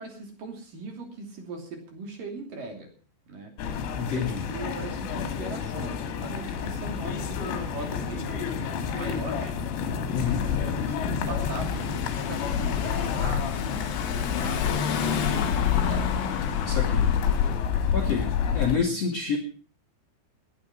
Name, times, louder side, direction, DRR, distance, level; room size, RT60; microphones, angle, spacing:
voice 1, 0.0-2.9 3.3-3.5 4.0-9.6 10.1-16.2, right 3 dB, 50° right, 3 dB, 4.2 m, -40 dB
sound 1, 3.6-18.8, left 7 dB, 80° left, 4.7 m, -30 dB
voice 2, 4.0-4.4 10.1-10.4 16.6-17.1 17.9-19.4, left 5 dB, 40° left, 3 dB, 2.6 m, -28 dB
Car / Engine, 10.8-17.7, left 8 dB, 55° left, 2.9 m, -28 dB
20.0 x 10.5 x 5.9 m, 0.40 s
omnidirectional pair, 5.7 m